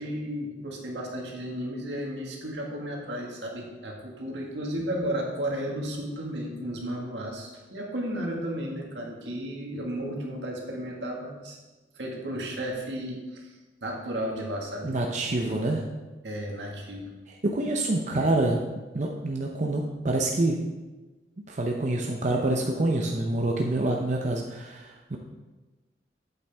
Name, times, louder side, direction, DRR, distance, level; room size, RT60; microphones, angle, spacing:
voice 1, 0.0-11.6 11.9-14.9 16.2-17.0, equal, 80° right, -1 dB, 1.9 m, -33 dB
voice 2, 14.8-15.8 17.4-18.6 18.9-20.6 21.5-25.2, right 2 dB, 45° right, 0 dB, 0.7 m, -26 dB
8.5 x 8.2 x 3.5 m, 1.2 s
head